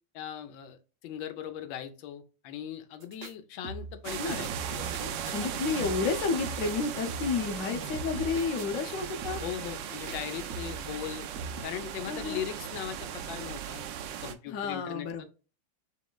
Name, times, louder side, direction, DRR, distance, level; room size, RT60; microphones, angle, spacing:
voice 1, 0.1-5.1 5.4-6.0 9.4-11.3 11.6-13.8 14.2-15.2, left 10 dB, 90° left, 7 dB, 1.3 m, -39 dB
sound 1, 3.0-3.3 3.6-4.0 4.3-5.4 5.8-6.2 6.4-7.4 7.7-8.9 9.2-9.6 10.1-10.9 11.4-11.6, right 3 dB, 60° right, 0.8 m, -41 dB
sound 2, 4.0-14.3, right 9 dB, 80° right, 1.3 m, -37 dB
voice 2, 5.3-9.4 12.1-12.4 14.5-15.2, left 4 dB, 60° left, 4 dB, 0.9 m, -31 dB
6.2 x 3.0 x 2.2 m, 0.34 s
omnidirectional pair, 2.0 m